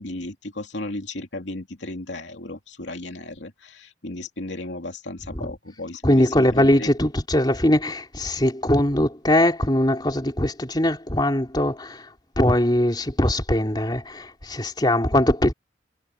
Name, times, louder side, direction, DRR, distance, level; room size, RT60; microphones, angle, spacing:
voice 1, 0.0-6.9, left 2 dB, 85° left, 2.8 m, -34 dB
voice 2, 6.0-12.1 12.4-15.5, left 1 dB, 25° left, 3.6 m, -21 dB
head